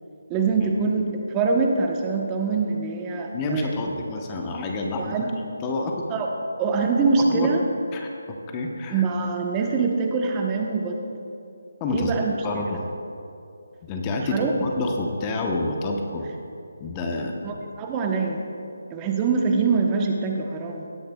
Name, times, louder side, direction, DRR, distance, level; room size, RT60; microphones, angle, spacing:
voice 1, 0.3-3.8 5.0-5.3 6.1-6.3 6.6-7.7 8.9-11.0 11.9-12.3 12.7-12.8 14.3-14.5 17.4-18.4 18.9-20.9, right 4 dB, 20° right, 1 dB, 1.0 m, -24 dB
voice 2, 3.3-5.3 5.6-6.0 7.2-7.5 7.9-9.0 11.8-12.1 12.4-12.9 13.8-16.3 16.8-17.5, left 2 dB, 20° left, 1 dB, 0.9 m, -28 dB
18.5 x 10.0 x 2.3 m, 2.6 s
figure-of-eight pair, 155°, 0 cm